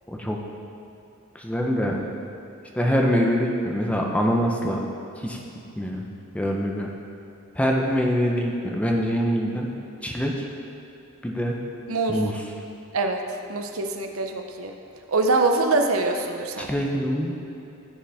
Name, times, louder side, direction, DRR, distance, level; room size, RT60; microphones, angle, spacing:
voice 1, 0.1-0.4 1.3-2.0 2.8-4.8 5.2-5.4 5.8-6.1 6.3-6.9 7.6-9.7 10.0-10.5 11.2-11.6 12.1-12.4 16.6-17.3, equal, 5° left, 0 dB, 0.7 m, -24 dB
voice 2, 11.9-12.2 12.9-13.2 13.5-14.7 15.1-16.7, right 3 dB, 80° right, 4 dB, 0.7 m, -24 dB
14.5 x 5.2 x 3.5 m, 2.8 s
head